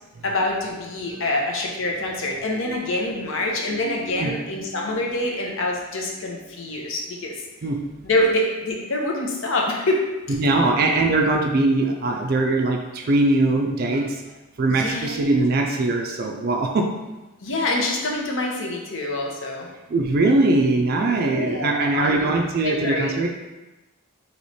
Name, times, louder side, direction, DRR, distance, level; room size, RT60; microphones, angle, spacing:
voice 1, 0.2-7.3 8.0-10.0 10.3-10.4 14.7-15.2 17.4-19.7 21.2-22.3 22.6-23.1, left 1 dB, 65° left, 0 dB, 0.7 m, -26 dB
voice 2, 3.7-4.3 4.8-4.9 7.6-7.8 10.4-14.2 14.6-16.9 19.9-23.3, right 2 dB, 45° right, 2 dB, 0.4 m, -21 dB
3.2 x 3.0 x 4.1 m, 1.1 s
head